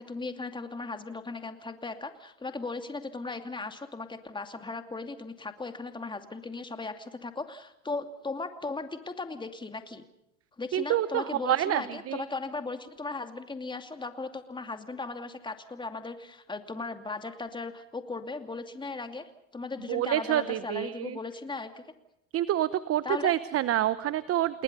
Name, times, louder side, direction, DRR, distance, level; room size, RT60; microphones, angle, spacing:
voice 1, 0.0-10.0 10.6-21.8 23.0-23.3, left 3 dB, 10° left, 7 dB, 2.6 m, -37 dB
voice 2, 10.7-12.2 19.9-21.2 22.3-24.6, right 12 dB, 40° right, 15 dB, 1.0 m, -27 dB
29.5 x 20.5 x 5.5 m, 0.81 s
supercardioid pair, 115°, 38 cm